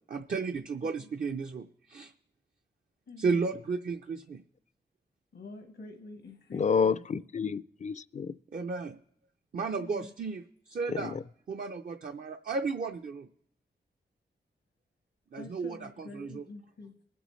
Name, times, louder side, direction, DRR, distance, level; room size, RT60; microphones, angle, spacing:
voice 1, 0.1-2.1 3.2-4.4 8.5-9.0 9.5-11.2 11.5-13.3 15.3-16.4, right 4 dB, 50° right, 0.5 m, -34 dB
voice 2, 3.1-3.5 5.3-7.1 9.8-10.1 15.3-17.0, left 3 dB, 90° left, 1.1 m, -47 dB
voice 3, 6.5-8.3 10.9-11.2, left 6 dB, 40° left, 0.4 m, -29 dB
23.0 x 8.0 x 3.1 m
wide cardioid pair, 90°, 18 cm